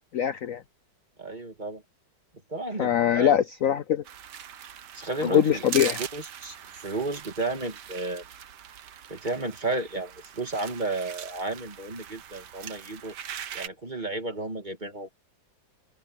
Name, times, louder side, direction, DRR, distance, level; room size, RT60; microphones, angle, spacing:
voice 1, 0.1-0.6 2.8-4.0 5.3-6.0, left 10 dB, 65° left, 0.8 m, -22 dB
voice 2, 1.2-1.8 2.5-3.4 4.9-8.2 9.1-13.1 13.5-15.1, right 2 dB, 25° right, 2.0 m, -33 dB
sound 1, 4.0-13.7, right 9 dB, 60° right, 1.5 m, -41 dB
omnidirectional pair, 2.2 m